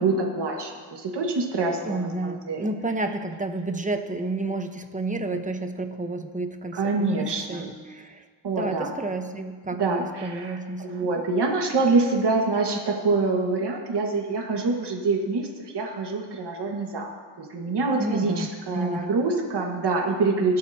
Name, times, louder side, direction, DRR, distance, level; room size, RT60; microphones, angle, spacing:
voice 1, 0.0-2.7 5.3-5.4 6.7-7.8 8.4-8.9 9.7-17.1 17.4-20.6, right 3 dB, 60° right, 0 dB, 1.8 m, -26 dB
voice 2, 1.8-8.2 8.6-10.9 18.0-18.5 18.7-19.1, right 2 dB, 15° right, 6 dB, 1.1 m, -30 dB
21.5 x 8.8 x 2.9 m, 1.5 s
cardioid pair, 70°, 46 cm